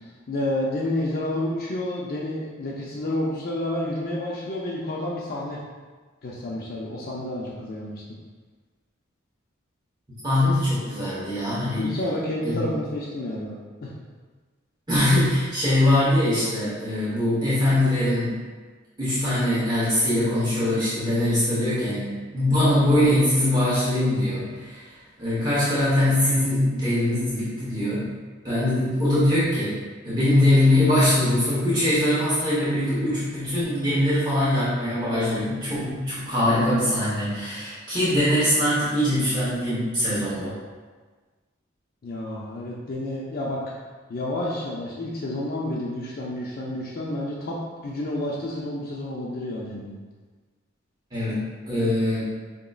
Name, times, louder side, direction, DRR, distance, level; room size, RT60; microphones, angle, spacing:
voice 1, 0.0-5.6 6.2-8.0 11.8-13.5 13.8-13.9 42.0-43.6 44.1-47.6 47.8-50.0, left 1 dB, 50° left, -4 dB, 0.5 m, -30 dB
voice 2, 10.2-11.9 12.4-12.7 14.9-18.4 19.0-24.8 25.2-28.1 28.4-29.8 30.0-40.5 51.1-52.2, left 1 dB, 20° right, -11 dB, 1.1 m, -22 dB
5.1 x 2.9 x 2.3 m, 1.4 s
head